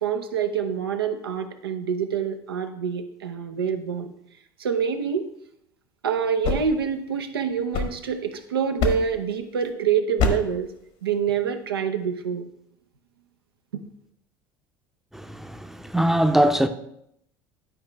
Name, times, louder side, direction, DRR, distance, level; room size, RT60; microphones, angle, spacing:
voice 1, 0.0-4.1 4.6-5.3 6.0-10.7 11.0-12.5 13.7-13.8, right 7 dB, 90° right, 0.7 m, -26 dB
sound 1, 6.2-8.4 8.8-9.3 10.2-10.6, left 4 dB, 60° left, 1.2 m, -27 dB
voice 2, 15.1-16.7, right 1 dB, 5° right, 0.6 m, -22 dB
9.8 x 4.7 x 3.3 m
hypercardioid pair, 70°, 12 cm